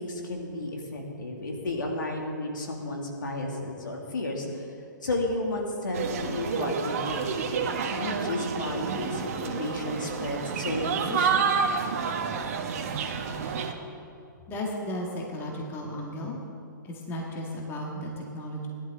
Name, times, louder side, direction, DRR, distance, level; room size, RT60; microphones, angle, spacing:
voice 1, 0.0-4.7 5.0-11.8, left 2 dB, 65° left, 0 dB, 2.6 m, -33 dB
sound 1, 5.9-13.7, right 6 dB, 45° right, 1.3 m, -29 dB
voice 2, 14.5-16.4 16.8-18.7, left 1 dB, 20° left, -1 dB, 2.0 m, -34 dB
19.0 x 11.5 x 3.9 m, 2.5 s
figure-of-eight pair, 125°, 11 cm